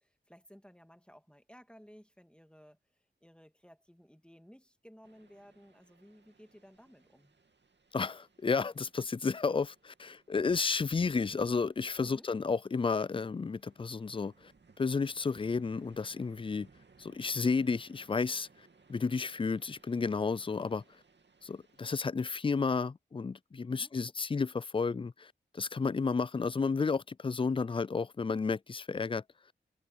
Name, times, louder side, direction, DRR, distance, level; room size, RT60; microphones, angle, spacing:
voice 1, 0.0-7.4 12.0-12.3 23.7-23.9, equal, 5° left, 2.3 m, -57 dB
sound 1, 5.0-22.1, right 4 dB, 60° right, 2.5 m, -65 dB
voice 2, 7.9-14.5 14.8-16.7 17.0-18.5 18.9-20.8 21.4-29.2, left 4 dB, 25° left, 0.4 m, -32 dB
cardioid pair, 40°, 20 cm